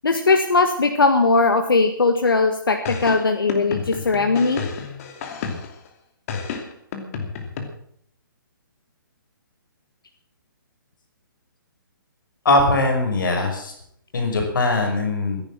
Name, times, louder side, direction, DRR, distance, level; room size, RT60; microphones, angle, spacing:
voice 1, 0.0-4.6, left 3 dB, 85° left, 6 dB, 1.7 m, -19 dB
sound 1, 2.9-5.9 6.3-7.6, left 5 dB, 40° left, 2.7 m, -31 dB
voice 2, 12.5-13.7 14.1-15.4, left 2 dB, 65° left, 3 dB, 5.3 m, -20 dB
14.0 x 11.0 x 7.4 m, 0.69 s
hypercardioid pair, 145°, 11 cm